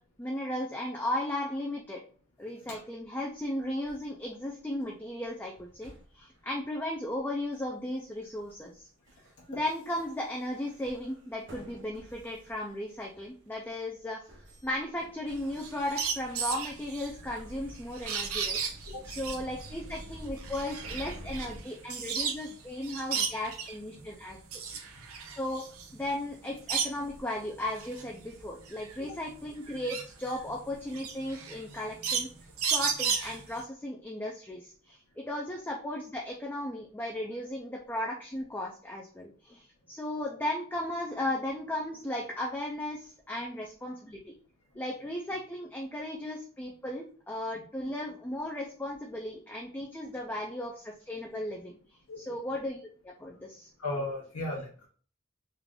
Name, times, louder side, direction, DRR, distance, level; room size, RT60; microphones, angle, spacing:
voice 1, 0.2-2.0 2.4-8.9 9.5-14.2 14.6-18.6 19.0-24.4 25.3-25.6 25.9-32.3 32.6-44.3 44.8-51.8 52.2-53.7, left 1 dB, 10° left, -1 dB, 0.3 m, -36 dB
sound 1, 3.3-4.1 4.5-4.9 5.5-6.4 7.5-7.8 8.2-8.7 9.1-9.4 9.6-13.7 14.3-21.6, equal, 55° right, 0.8 m, -49 dB
sound 2, 15.3-22.5 22.8-23.8 24.3-27.2 27.6-33.6, right 6 dB, 85° right, 0.7 m, -34 dB
voice 2, 53.8-54.9, left 2 dB, 85° left, -2 dB, 0.8 m, -35 dB
3.2 x 2.4 x 3.6 m, 0.43 s
head